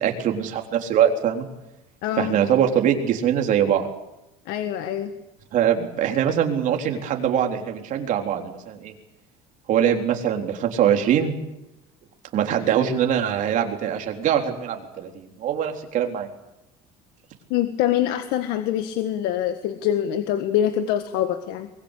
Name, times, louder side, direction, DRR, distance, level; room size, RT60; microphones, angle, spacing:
voice 1, 0.0-1.5 2.2-3.9 5.5-8.9 9.7-11.4 12.3-16.3, right 9 dB, 50° right, 3 dB, 3.8 m, -22 dB
voice 2, 2.0-2.3 4.5-5.1 17.5-21.7, left 11 dB, 75° left, 8 dB, 1.7 m, -24 dB
24.0 x 22.0 x 8.4 m, 0.92 s
cardioid pair, 155°, 17 cm